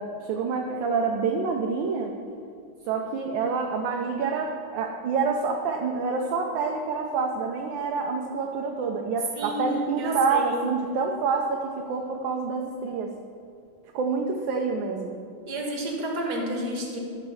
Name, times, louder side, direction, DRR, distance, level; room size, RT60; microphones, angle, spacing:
voice 1, 0.0-2.1 2.9-13.1 13.9-15.2, right 4 dB, 70° right, 2 dB, 1.4 m, -27 dB
voice 2, 9.4-10.6 15.5-17.0, right 1 dB, 55° right, 0 dB, 2.0 m, -30 dB
13.0 x 4.4 x 6.8 m, 2.3 s
omnidirectional pair, 2.3 m